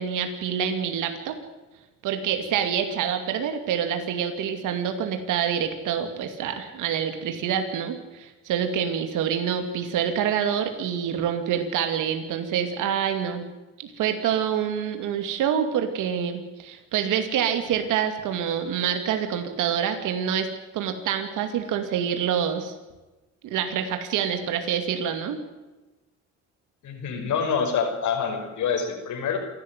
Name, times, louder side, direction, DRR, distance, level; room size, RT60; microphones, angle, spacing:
voice 1, 0.0-1.4 2.0-13.4 13.8-22.7 23.4-25.4, right 8 dB, 90° right, 7 dB, 2.5 m, -26 dB
voice 2, 26.8-29.4, left 6 dB, 80° left, 3 dB, 5.9 m, -26 dB
28.0 x 12.5 x 9.4 m, 1.1 s
cardioid pair, 90°, 30 cm